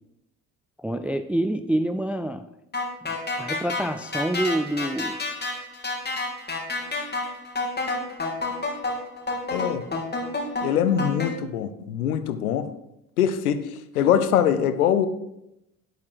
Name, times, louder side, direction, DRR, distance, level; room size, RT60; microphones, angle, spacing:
voice 1, 0.8-2.5 3.0-5.2, right 1 dB, 5° right, 0.4 m, -27 dB
sound 1, 2.7-11.3, left 3 dB, 20° left, 3.3 m, -29 dB
voice 2, 9.5-9.8 10.6-12.7 13.2-15.1, left 9 dB, 80° left, 0.8 m, -23 dB
10.0 x 8.3 x 4.9 m
figure-of-eight pair, 50°, 44 cm